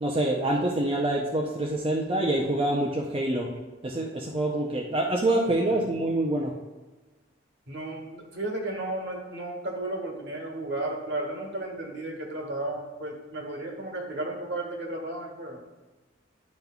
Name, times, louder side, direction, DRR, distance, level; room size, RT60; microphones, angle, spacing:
voice 1, 0.0-3.5 3.8-6.5, right 1 dB, 30° right, -1 dB, 0.6 m, -26 dB
voice 2, 7.7-15.6, right 2 dB, 65° right, 1 dB, 1.4 m, -34 dB
10.5 x 5.3 x 2.3 m, 1.2 s
head